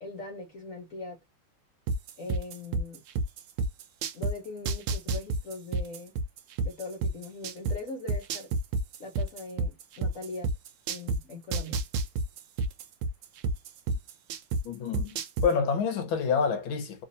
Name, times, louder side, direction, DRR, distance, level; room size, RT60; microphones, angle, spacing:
voice 1, 0.0-1.2 2.2-3.0 4.1-6.1 6.6-8.5 9.0-10.5 10.9-11.8, left 2 dB, 50° left, 1.0 m, -40 dB
sound 1, 1.9-4.3 4.7-7.7 8.1-11.2 11.5-14.6 14.9-15.5, right 3 dB, 70° right, 1.2 m, -28 dB
voice 2, 14.6-17.0, left 6 dB, 70° left, 1.7 m, -28 dB
3.8 x 2.8 x 2.6 m
omnidirectional pair, 2.3 m